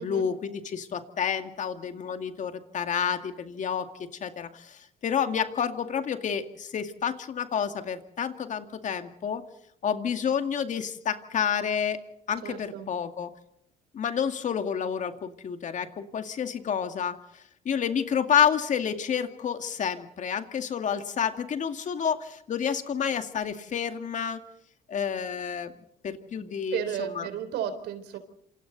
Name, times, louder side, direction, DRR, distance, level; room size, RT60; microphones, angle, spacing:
voice 1, 0.0-3.9 4.2-9.4 9.8-12.0 12.3-13.3 13.9-24.4 24.9-25.7 26.0-27.3, left 7 dB, 45° left, 7 dB, 2.2 m, -29 dB
voice 2, 12.4-12.9 26.4-28.2, right 9 dB, 80° right, 10 dB, 3.9 m, -34 dB
27.5 x 27.5 x 4.1 m, 0.72 s
cardioid pair, 110°, 17 cm